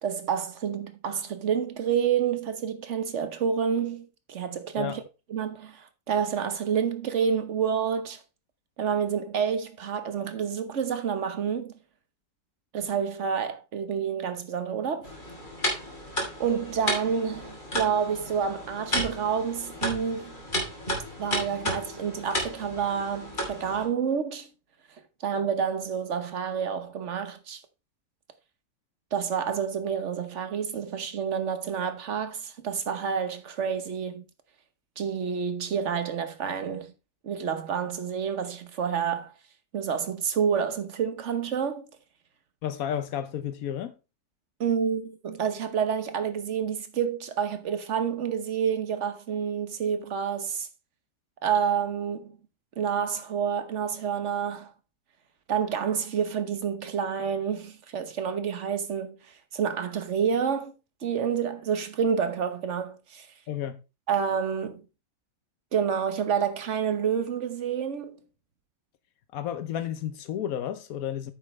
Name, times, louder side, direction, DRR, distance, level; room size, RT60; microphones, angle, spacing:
voice 1, 0.0-5.0 5.3-8.2 8.8-11.7 12.7-15.1 16.4-20.3 21.2-24.5 25.2-27.6 29.1-34.2 35.0-36.9 37.2-39.3 39.7-41.9 44.6-50.7 51.4-52.4 52.8-54.7 55.5-59.2 59.5-60.7 61.0-63.3 64.1-64.8 65.7-68.2, right 7 dB, 60° right, 1.4 m, -28 dB
sound 1, 15.0-23.8, equal, 35° left, 3.2 m, -33 dB
voice 2, 42.6-43.9 63.5-63.8 69.3-71.3, left 10 dB, 90° left, 1.2 m, -32 dB
9.2 x 7.4 x 3.2 m
omnidirectional pair, 1.4 m